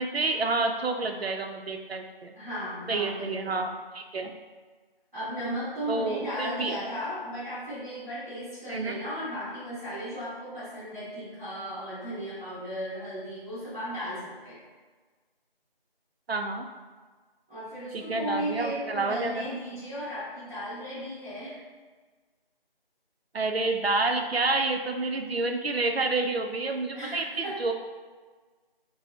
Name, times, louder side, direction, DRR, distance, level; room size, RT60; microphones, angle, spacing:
voice 1, 0.0-2.3 2.9-4.4 5.9-6.8 8.7-9.0 16.3-16.6 17.9-19.4 23.3-27.2 27.6-27.7, right 3 dB, 85° right, 4 dB, 0.5 m, -29 dB
voice 2, 2.3-3.6 5.1-14.6 17.5-21.6 26.9-27.6, equal, 15° right, -16 dB, 1.3 m, -35 dB
5.7 x 2.1 x 2.8 m, 1.4 s
figure-of-eight pair, 165°, 30 cm